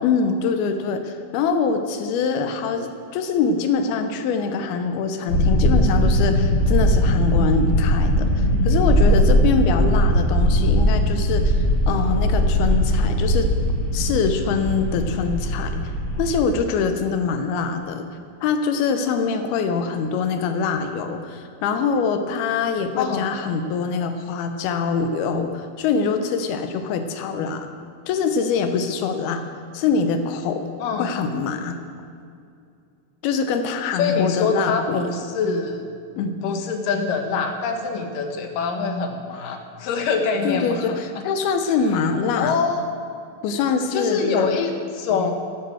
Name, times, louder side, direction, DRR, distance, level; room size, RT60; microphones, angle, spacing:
voice 1, 0.0-13.5 13.9-15.8 16.2-18.1 18.4-27.7 28.1-29.4 29.7-30.6 31.0-31.8 33.2-35.1 36.2-36.4 40.4-42.6 43.4-44.5, left 5 dB, 90° left, 7 dB, 2.8 m, -24 dB
sound 1, 5.3-16.4, equal, 30° left, 3.5 m, -19 dB
voice 2, 23.0-23.3 30.8-31.1 34.0-35.8 36.4-41.0 42.4-42.8 43.9-45.3, left 5 dB, 70° left, 5 dB, 2.5 m, -24 dB
12.0 x 10.5 x 6.1 m, 2.4 s
omnidirectional pair, 4.5 m